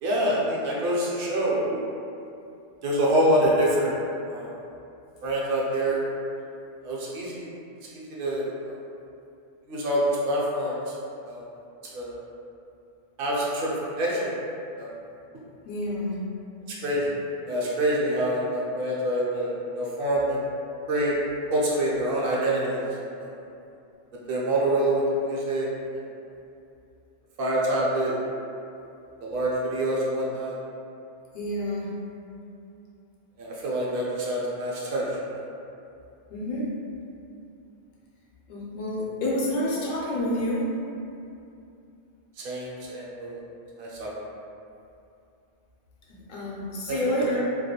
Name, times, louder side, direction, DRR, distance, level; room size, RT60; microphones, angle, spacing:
voice 1, 0.0-1.6 2.8-3.9 4.3-4.5 5.2-6.0 6.8-7.5 7.8-8.8 9.7-10.9 11.2-11.4 11.9-12.2 13.2-14.3 14.8-14.9 16.8-17.1 17.5-20.4 20.9-21.2 21.5-22.8 23.2-23.3 24.3-25.7 27.4-28.1 29.2-30.6 33.4-35.5 42.4-43.4 43.8-44.1 46.9-47.3, right 1 dB, 65° right, -5 dB, 0.7 m, -26 dB
voice 2, 15.6-16.2 31.3-31.9 36.3-36.7 38.5-40.7 46.3-47.5, left 1 dB, 60° left, -5 dB, 0.7 m, -28 dB
2.3 x 2.1 x 2.8 m, 2.6 s
omnidirectional pair, 1.1 m